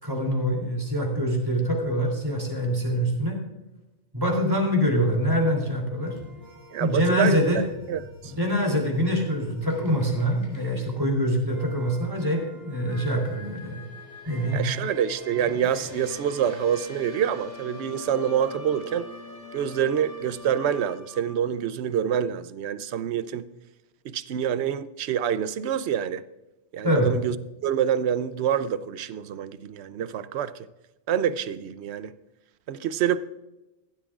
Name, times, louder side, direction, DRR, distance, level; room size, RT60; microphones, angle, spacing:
voice 1, 0.0-3.4 4.1-6.1 6.8-7.6 8.4-13.8 14.2-14.6 26.8-27.1, equal, 20° right, 3.1 m, -24 dB
sound 1, 6.0-21.4, left 1 dB, 15° left, 3.5 m, -43 dB
voice 2, 6.7-8.3 14.5-19.1 19.5-23.5 24.0-26.2 26.7-27.4 27.6-30.7 31.1-32.1 32.7-33.2, right 9 dB, 70° right, 0.9 m, -26 dB
16.0 x 12.0 x 2.4 m
omnidirectional pair, 1.2 m